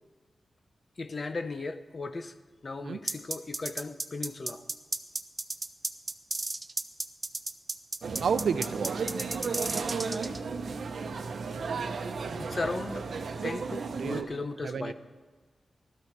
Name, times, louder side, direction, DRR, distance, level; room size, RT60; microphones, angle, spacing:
voice 1, 1.0-2.3 2.6-4.6 12.3-13.1 13.4-14.9, left 3 dB, 35° left, 10 dB, 0.7 m, -36 dB
sound 1, 3.1-10.4, right 2 dB, 25° right, 0.5 m, -33 dB
sound 2, 8.0-14.2, right 4 dB, 65° right, 0.9 m, -34 dB
voice 2, 8.2-9.1 14.0-14.3 14.6-14.9, right 6 dB, 90° right, 12 dB, 0.6 m, -31 dB
16.5 x 13.0 x 4.7 m, 1.4 s
wide cardioid pair, 170°, 0 cm